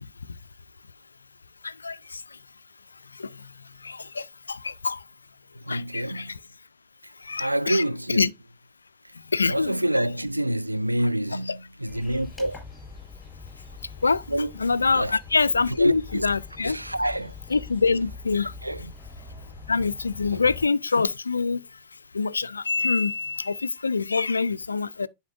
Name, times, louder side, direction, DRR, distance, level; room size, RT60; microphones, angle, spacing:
voice 1, 1.6-2.4 3.1-5.0 5.7-6.4 7.2-7.8 8.1-8.3 9.3-9.8 11.5-11.6 14.0-14.2 14.6-16.8 17.5-18.5 19.7-21.8 22.1-25.1, left 4 dB, 75° left, 0.3 m, -25 dB
voice 2, 5.6-6.4 7.3-8.3 9.5-12.6 14.3-14.5 14.9-15.2 15.8-16.3 16.6-17.3 18.6-18.9 20.3-20.4, right 1 dB, 85° right, 0.3 m, -27 dB
sound 1, 11.9-20.6, left 5 dB, 10° left, 4.2 m, -43 dB
10.5 x 5.2 x 2.5 m
figure-of-eight pair, 90°, 0 cm